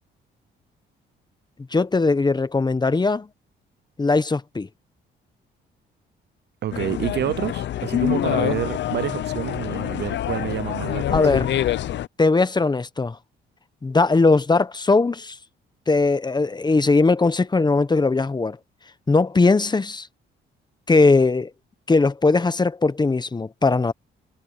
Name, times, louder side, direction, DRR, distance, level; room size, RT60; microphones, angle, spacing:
voice 1, 1.7-3.3 4.0-4.7 11.1-11.6 12.2-13.2 13.8-15.4 15.9-18.6 19.1-20.1 20.9-21.5 21.9-23.9, left 3 dB, 20° left, 1.1 m, -19 dB
voice 2, 6.6-11.5, right 11 dB, 60° right, 0.6 m, -28 dB
sound 1, 6.7-12.1, left 11 dB, 65° left, 0.8 m, -26 dB
cardioid pair, 90°, 20 cm